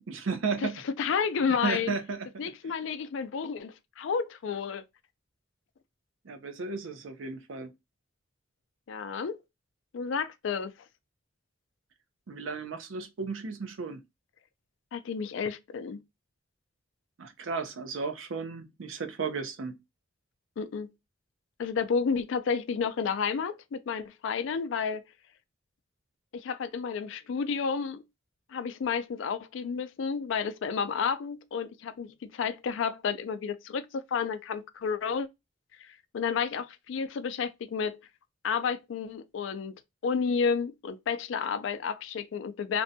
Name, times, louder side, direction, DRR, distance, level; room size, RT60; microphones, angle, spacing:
voice 1, 0.0-0.8 1.6-2.3 6.2-7.7 12.3-14.0 17.2-19.8, right 4 dB, 90° right, 0.5 m, -34 dB
voice 2, 0.6-1.9 2.4-4.8 8.9-9.4 9.9-10.7 14.9-16.0 20.6-20.9 21.6-25.1 26.3-28.0 28.5-35.3 35.8-38.0 38.4-39.7 40.0-42.8, left 6 dB, 75° left, 0.4 m, -31 dB
2.6 x 2.2 x 2.6 m
head